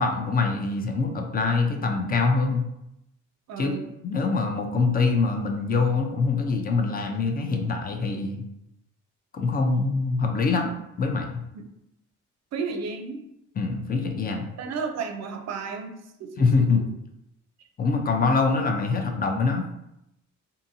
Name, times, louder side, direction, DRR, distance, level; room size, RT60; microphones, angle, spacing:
voice 1, 0.0-2.7 3.6-3.8 4.0-8.5 9.3-10.7 11.0-11.3 13.6-14.5 16.4-16.8 17.8-19.6, left 4 dB, 30° left, 4 dB, 0.5 m, -24 dB
voice 2, 3.5-3.9 11.5-11.6 12.5-13.2 14.6-16.3, right 5 dB, 60° right, 5 dB, 0.5 m, -32 dB
2.6 x 2.6 x 2.7 m, 0.84 s
cardioid pair, 90°, 30 cm